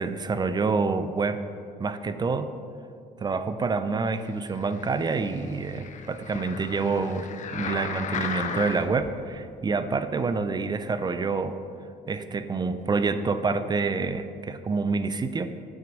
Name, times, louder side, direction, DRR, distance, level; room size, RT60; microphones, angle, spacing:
voice 1, 0.0-1.4 1.8-2.5 3.2-7.3 7.5-11.5 12.1-15.5, right 4 dB, 25° right, 11 dB, 0.5 m, -27 dB
sound 1, 4.5-9.1 9.7-9.8, left 6 dB, 45° left, 0.7 m, -35 dB
9.1 x 5.9 x 6.3 m, 2.3 s
cardioid pair, 110°, 17 cm